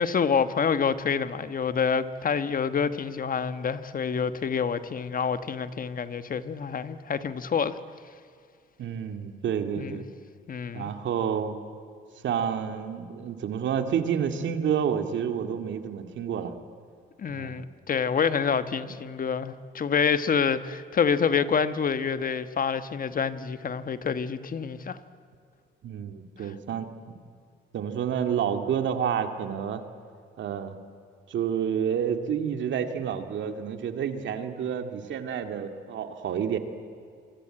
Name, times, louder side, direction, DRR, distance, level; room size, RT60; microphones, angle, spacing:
voice 1, 0.0-7.8 9.8-10.0 10.5-10.9 17.2-25.0, left 6 dB, 45° left, 1.3 m, -27 dB
voice 2, 8.8-10.1 10.7-11.6 12.2-16.5 17.3-17.6 18.8-18.9 25.8-27.2 27.7-29.8 30.4-30.8 31.3-36.6, right 8 dB, 75° right, 2.3 m, -29 dB
26.0 x 23.5 x 8.9 m
cardioid pair, 90°, 19 cm